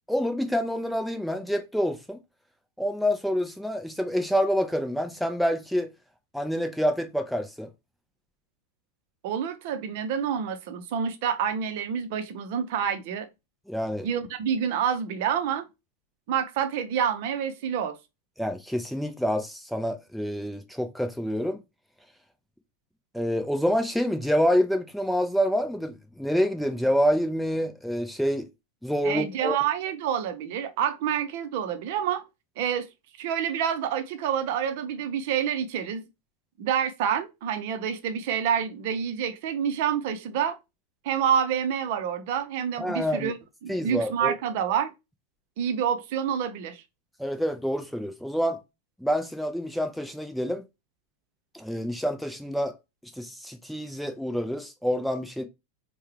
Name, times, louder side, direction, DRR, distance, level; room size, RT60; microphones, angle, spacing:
voice 1, 0.1-2.2 2.8-5.9 6.3-7.7 13.7-14.1 18.4-21.6 23.1-28.5 28.8-29.6 42.8-43.3 43.7-44.3 47.2-48.6 49.0-50.6 51.5-52.7 53.2-55.4, equal, ahead, 0.5 m, -27 dB
voice 2, 9.2-13.3 14.0-15.6 16.3-18.0 29.0-32.2 32.6-32.9 33.2-36.0 36.6-40.6 41.0-43.4 43.6-44.9 45.6-46.8, right 8 dB, 50° right, 0.6 m, -28 dB
4.5 x 2.2 x 3.2 m
figure-of-eight pair, 90°, 0 cm